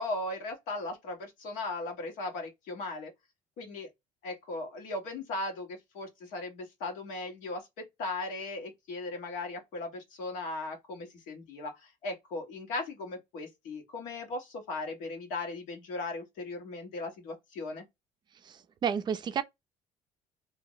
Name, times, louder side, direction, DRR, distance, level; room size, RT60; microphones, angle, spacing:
voice 1, 0.0-3.1 3.6-3.9 4.2-17.8, left 2 dB, 80° left, 1.3 m, -37 dB
voice 2, 18.4-19.4, right 7 dB, 35° right, 0.4 m, -31 dB
2.7 x 2.0 x 3.8 m
cardioid pair, 145°, 13 cm